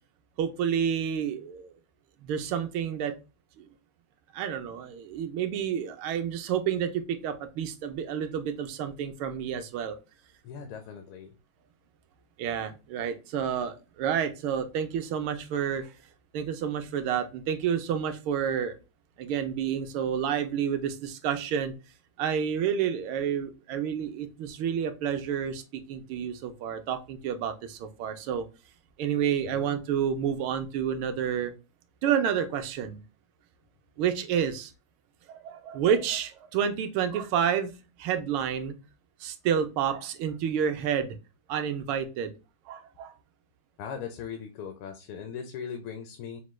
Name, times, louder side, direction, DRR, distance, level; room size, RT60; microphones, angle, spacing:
voice 1, 0.4-1.7 2.2-3.1 3.6-3.7 4.3-10.0 12.4-15.9 16.3-18.8 19.2-21.7 22.2-28.5 29.0-31.5 32.0-33.0 34.0-34.7 35.3-37.7 38.0-38.8 39.2-41.2 41.5-42.3 42.7-43.1, right 8 dB, 80° right, 8 dB, 1.5 m, -29 dB
voice 2, 10.4-11.3 29.5-29.8 43.8-46.4, left 7 dB, 80° left, 5 dB, 1.5 m, -39 dB
5.9 x 2.2 x 3.1 m, 0.30 s
omnidirectional pair, 2.3 m